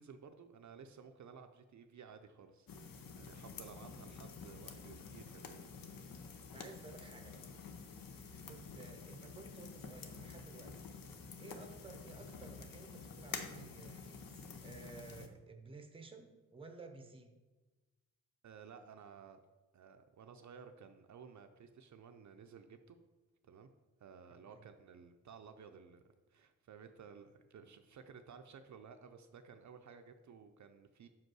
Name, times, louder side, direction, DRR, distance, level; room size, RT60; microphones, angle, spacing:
voice 1, 0.0-5.6 18.4-19.4 19.7-23.0 23.4-23.7 24.0-31.1, right 6 dB, 60° right, 6 dB, 0.5 m, -55 dB
sound 1, 2.7-15.3, left 5 dB, 85° left, 0.8 m, -49 dB
voice 2, 6.5-7.5 8.1-17.4 24.5-24.6, right 4 dB, 15° right, 6 dB, 0.6 m, -55 dB
5.6 x 5.2 x 6.1 m, 1.2 s
wide cardioid pair, 160°, 33 cm